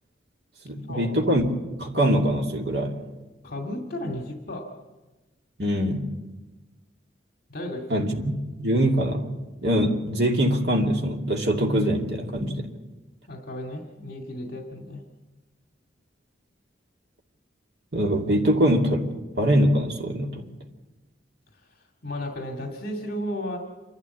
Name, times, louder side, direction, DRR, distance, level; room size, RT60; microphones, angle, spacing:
voice 1, 0.6-1.5 1.8-2.9 5.6-6.1 7.9-8.2 8.6-9.3 9.6-12.7 17.9-19.1 19.4-20.5, equal, 60° right, 1 dB, 2.5 m, -23 dB
voice 2, 3.4-4.8 7.5-8.1 13.3-15.0 21.8-23.6, left 1 dB, 50° left, 2 dB, 2.3 m, -34 dB
27.5 x 12.5 x 8.4 m, 1.2 s
head